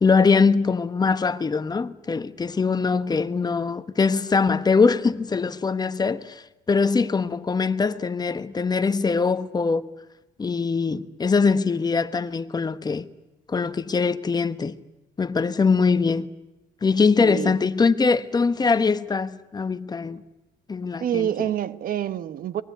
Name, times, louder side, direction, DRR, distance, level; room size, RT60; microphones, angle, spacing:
voice 1, 0.0-9.9 10.4-13.1 13.5-14.8 15.2-16.3 16.8-20.2 20.7-21.3, left 4 dB, 25° left, 1.1 m, -22 dB
voice 2, 17.2-17.6 21.0-22.6, right 10 dB, 55° right, 1.2 m, -27 dB
23.5 x 21.5 x 9.3 m
cardioid pair, 110°, 17 cm